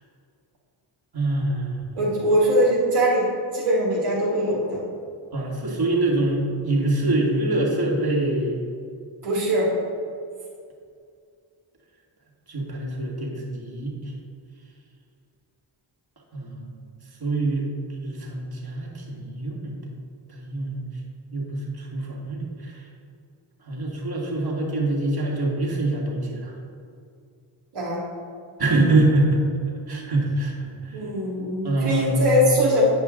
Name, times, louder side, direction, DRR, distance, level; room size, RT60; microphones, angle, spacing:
voice 1, 1.1-1.8 5.3-8.6 12.5-13.9 16.3-16.8 17.2-17.7 18.0-19.8 20.3-20.9 21.3-22.7 23.7-26.5 28.6-29.5 29.9-30.5 31.6-32.4, right 2 dB, 50° right, -2 dB, 2.1 m, -24 dB
voice 2, 1.9-4.8 9.2-9.7 27.7-28.0 30.9-32.8, equal, 85° right, -6 dB, 1.8 m, -22 dB
9.9 x 5.4 x 3.8 m, 2.3 s
cardioid pair, 40°, 50 cm